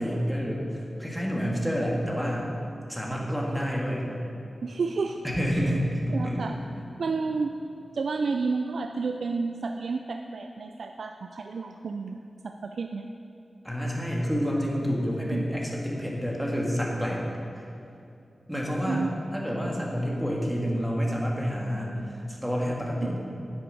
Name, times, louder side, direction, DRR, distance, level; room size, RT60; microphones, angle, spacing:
voice 1, 0.0-2.5 2.9-4.1 5.2-6.5 13.6-17.2 17.6-17.7 18.5-19.0 19.3-23.2, equal, 5° right, -3 dB, 1.8 m, -28 dB
voice 2, 4.6-5.2 6.1-6.6 7.0-7.5 7.9-13.1 15.3-15.5 18.9-19.1, right 4 dB, 75° right, 5 dB, 0.4 m, -31 dB
9.7 x 8.0 x 5.4 m, 2.7 s
wide cardioid pair, 85°, 0 cm